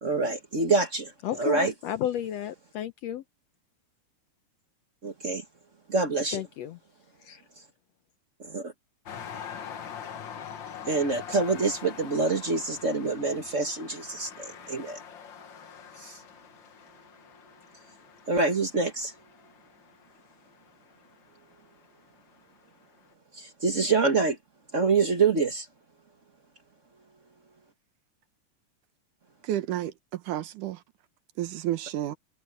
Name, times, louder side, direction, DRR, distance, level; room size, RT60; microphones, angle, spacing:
voice 1, 0.0-1.1 1.4-1.7 5.0-5.4 5.9-6.4 8.4-8.7 10.9-15.0 16.0-16.2 18.3-19.1 23.3-24.4 24.7-25.7, right 4 dB, 40° right, 1.0 m, -26 dB
voice 2, 1.2-3.2 6.3-6.8 7.2-7.4, left 11 dB, 75° left, 1.6 m, -32 dB
sound 1, 9.1-21.9 22.5-22.6, left 8 dB, 50° left, 1.5 m, -44 dB
voice 3, 29.4-30.8 31.4-32.2, right 13 dB, 80° right, 2.6 m, -31 dB
omnidirectional pair, 3.6 m